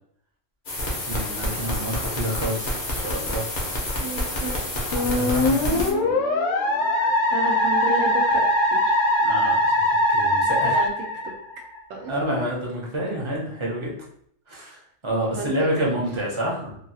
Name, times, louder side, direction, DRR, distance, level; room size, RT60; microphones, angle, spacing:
sound 1, 0.7-5.9, left 1 dB, 45° left, 0.7 m, -28 dB
voice 1, 1.0-3.5 4.9-6.1 9.2-9.8 10.1-10.7 12.1-13.9 14.5-16.8, equal, 35° right, -3 dB, 0.5 m, -28 dB
voice 2, 4.0-4.5 5.3-5.7 7.3-8.4 8.7-9.0 10.4-11.3 11.9-12.2 15.3-15.5, right 3 dB, 85° right, 1 dB, 1.0 m, -32 dB
Musical instrument, 4.9-11.8, left 1 dB, 80° left, 0.9 m, -21 dB
2.7 x 2.3 x 2.6 m, 0.66 s
omnidirectional pair, 1.3 m